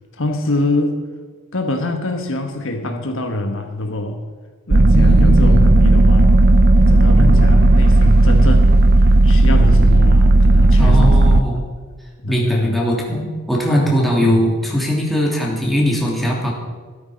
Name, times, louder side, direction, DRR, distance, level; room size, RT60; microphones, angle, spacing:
voice 1, 0.1-1.0 1.5-4.2 4.7-6.3 6.8-8.7 9.0-11.6 12.2-12.9 13.6-13.9 14.2-14.5, left 1 dB, 60° left, 4 dB, 1.4 m, -24 dB
sound 1, 4.7-11.4, right 2 dB, 45° right, 0.6 m, -12 dB
voice 2, 4.9-5.7 7.1-7.7 10.8-11.6 12.3-16.5, equal, ahead, -4 dB, 3.2 m, -20 dB
14.5 x 13.0 x 5.2 m, 1.5 s
head